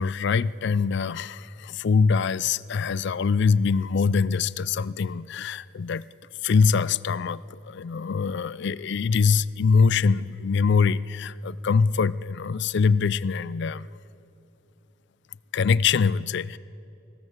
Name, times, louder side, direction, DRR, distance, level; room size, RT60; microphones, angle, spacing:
voice 1, 0.0-6.0 6.4-13.9 15.5-16.6, left 5 dB, 60° left, 18 dB, 0.4 m, -23 dB
24.5 x 16.0 x 8.0 m, 3.0 s
head